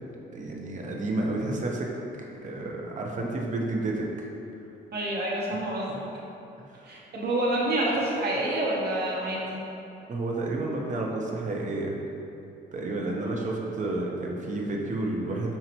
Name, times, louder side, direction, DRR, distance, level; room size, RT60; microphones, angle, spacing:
voice 1, 0.3-1.9 2.4-4.3 6.7-6.8 10.1-12.0 12.7-15.6, right 2 dB, 40° right, -1 dB, 0.7 m, -30 dB
voice 2, 4.9-6.0 6.8-9.6 13.2-13.3, right 1 dB, 55° right, -5 dB, 1.1 m, -28 dB
5.6 x 3.0 x 2.9 m, 2.8 s
cardioid pair, 90°, 20 cm